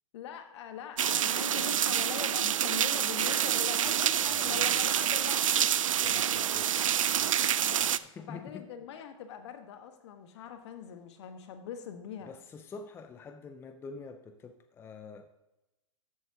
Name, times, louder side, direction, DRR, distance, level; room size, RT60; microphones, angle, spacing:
voice 1, 0.1-5.7 6.1-6.6 7.6-7.9 8.2-12.3, left 8 dB, 60° left, 1.3 m, -42 dB
sound 1, 1.0-8.0, right 10 dB, 85° right, 0.4 m, -27 dB
voice 2, 4.3-4.9 6.0-8.7 12.3-15.3, left 4 dB, 15° left, 0.5 m, -47 dB
13.5 x 7.5 x 2.8 m
hypercardioid pair, 120°, 17 cm